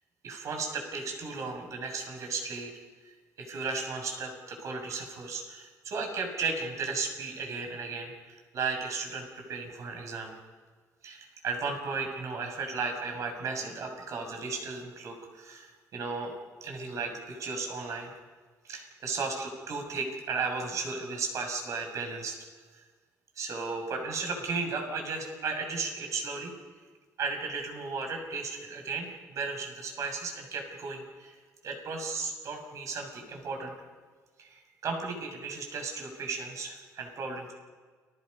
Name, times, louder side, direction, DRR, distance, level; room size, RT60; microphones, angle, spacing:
voice 1, 0.2-2.7 3.4-8.1 8.5-10.3 11.0-16.3 16.6-18.1 18.6-22.3 23.4-26.5 27.2-31.4 31.6-33.7 34.4-37.5, right 4 dB, 60° right, 3 dB, 6.8 m, -35 dB
30.0 x 21.5 x 5.5 m, 1.4 s
cardioid pair, 125°, 6 cm